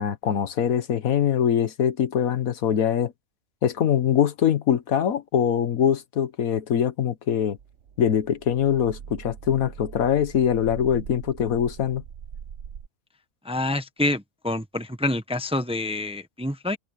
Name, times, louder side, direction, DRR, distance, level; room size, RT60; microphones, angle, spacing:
voice 1, 0.0-3.1 3.6-7.6 8.0-12.0, left 9 dB, 85° left, 1.5 m, -23 dB
sound 1, 7.6-12.9, right 8 dB, 60° right, 1.1 m, -41 dB
voice 2, 13.4-16.8, left 1 dB, 5° right, 0.7 m, -27 dB
open air
omnidirectional pair, 1.4 m